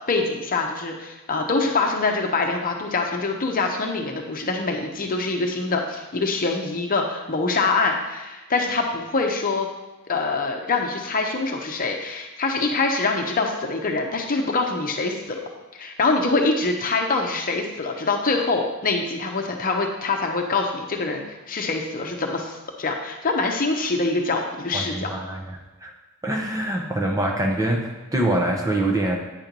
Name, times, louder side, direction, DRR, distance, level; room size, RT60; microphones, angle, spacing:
voice 1, 0.1-9.7 10.1-15.4 15.7-25.1, left 3 dB, 40° left, 2 dB, 0.9 m, -24 dB
voice 2, 24.7-25.9 26.2-29.2, right 1 dB, 15° right, 1 dB, 0.9 m, -24 dB
9.0 x 4.5 x 5.3 m, 1.1 s
head